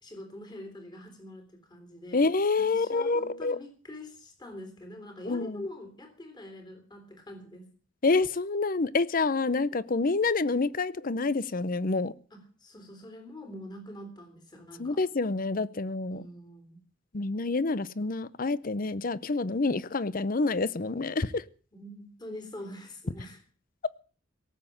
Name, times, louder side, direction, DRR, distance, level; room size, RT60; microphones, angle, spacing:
voice 1, 0.0-7.7 12.3-15.0 16.1-16.8 21.7-23.4, left 1 dB, 20° left, 5 dB, 3.5 m, -44 dB
voice 2, 2.1-3.6 5.3-5.6 8.0-12.1 14.8-16.2 17.1-21.4, left 3 dB, 45° left, 19 dB, 0.7 m, -27 dB
18.0 x 7.9 x 8.7 m, 0.41 s
head